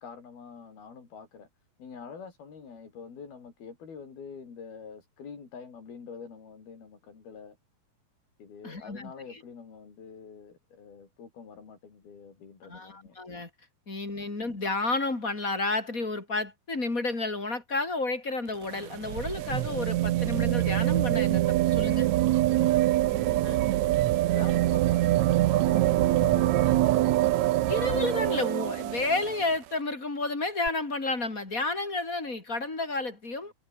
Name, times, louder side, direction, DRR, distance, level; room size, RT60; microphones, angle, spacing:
voice 1, 0.0-1.5 1.8-7.6 8.4-13.2 22.4-23.9 24.3-27.1, left 6 dB, 85° left, 6.8 m, -45 dB
voice 2, 8.6-9.4 12.6-13.5 13.9-22.1 23.4-23.6 24.4-24.5 27.7-33.5, left 3 dB, 20° left, 4.6 m, -31 dB
sound 1, 18.5-29.5 30.7-30.8, right 15 dB, 75° right, 1.7 m, -24 dB
omnidirectional pair, 4.2 m